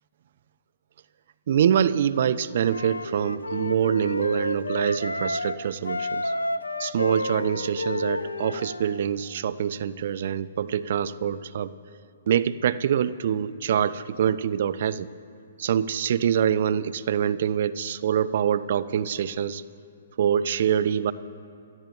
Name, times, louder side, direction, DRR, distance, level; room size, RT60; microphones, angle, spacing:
voice 1, 1.5-6.3 6.8-11.7 12.3-15.1 15.6-19.6 20.2-21.1, right 8 dB, 55° right, 15 dB, 0.5 m, -25 dB
Wind instrument woodwind instrument, 2.6-5.6 5.8-9.0, left 2 dB, 85° left, 0.6 m, -30 dB
28.5 x 14.0 x 3.1 m, 2.4 s
figure-of-eight pair, 125°, 0 cm